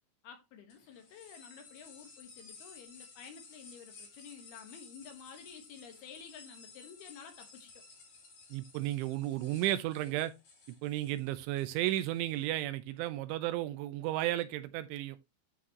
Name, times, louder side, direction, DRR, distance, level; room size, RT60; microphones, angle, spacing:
voice 1, 0.2-7.8, left 7 dB, 65° left, 2.9 m, -51 dB
sound 1, 0.7-12.6, left 4 dB, 40° left, 3.8 m, -55 dB
voice 2, 8.5-10.3 10.8-15.2, right 15 dB, 85° right, 3.2 m, -33 dB
11.0 x 6.0 x 2.9 m
omnidirectional pair, 5.3 m